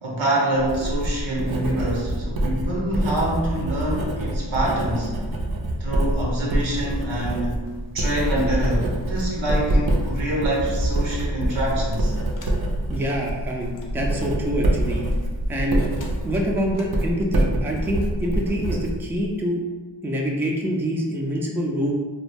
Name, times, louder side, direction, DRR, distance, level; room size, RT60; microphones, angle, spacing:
voice 1, 0.0-5.1 5.8-7.6 7.9-12.1, right 1 dB, 85° right, -3 dB, 0.8 m, -26 dB
Writing, 0.5-19.4, right 1 dB, 55° right, 0.5 m, -26 dB
sound 1, 7.7-16.5, left 1 dB, 85° left, 0.5 m, -32 dB
sound 2, 11.7-12.6 13.0-14.4 14.9-15.4 15.9-16.3 16.7-16.9 17.5-18.4, left 1 dB, 45° left, 0.6 m, -44 dB
voice 2, 12.9-15.0 15.5-15.9 16.2-19.6 20.0-21.9, equal, 5° right, -1 dB, 0.4 m, -26 dB
2.3 x 2.1 x 3.3 m, 1.4 s
cardioid pair, 45°, 46 cm